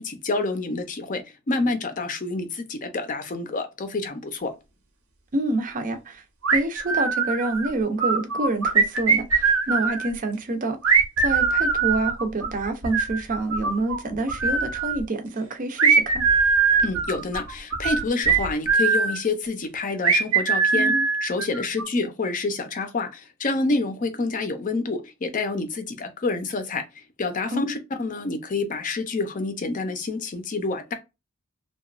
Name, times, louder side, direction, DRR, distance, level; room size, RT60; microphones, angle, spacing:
voice 1, 0.0-4.5 16.8-20.9 21.2-30.9, left 3 dB, 40° left, 0.5 m, -28 dB
voice 2, 5.3-6.2 6.5-16.2 20.7-21.0 27.5-27.8, right 2 dB, 40° right, 0.5 m, -27 dB
sound 1, 6.4-7.7 8.0-10.1 10.8-14.0 14.3-15.0 15.8-19.2 20.0-21.8, right 5 dB, 85° right, 0.9 m, -21 dB
2.8 x 2.2 x 2.3 m
head